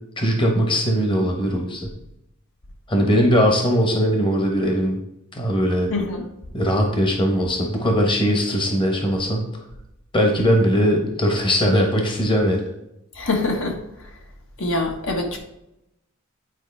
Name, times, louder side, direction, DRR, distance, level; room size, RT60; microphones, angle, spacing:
voice 1, 0.2-1.9 2.9-5.0 5.3-5.9 6.5-9.4 10.1-12.6, equal, 25° left, 2 dB, 1.0 m, -20 dB
voice 2, 5.9-6.2 13.1-14.1 14.6-15.4, left 2 dB, 70° left, 1 dB, 1.4 m, -25 dB
9.1 x 4.6 x 3.4 m, 0.86 s
head